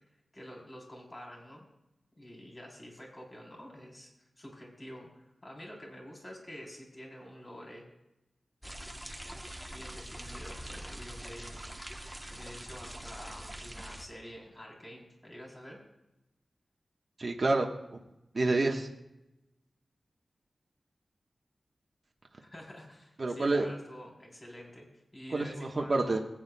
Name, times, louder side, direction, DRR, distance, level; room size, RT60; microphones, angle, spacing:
voice 1, 0.3-1.7 2.2-7.9 9.7-15.8 22.4-24.9 25.1-26.2, equal, 30° left, -1 dB, 3.5 m, -48 dB
sound 1, 8.6-14.1, right 1 dB, 5° right, 1.0 m, -44 dB
voice 2, 17.2-18.0 18.3-18.9 23.2-23.7 25.3-26.2, right 2 dB, 50° right, 1 dB, 1.2 m, -28 dB
20.5 x 9.0 x 2.3 m, 0.91 s
wide cardioid pair, 90°, 0 cm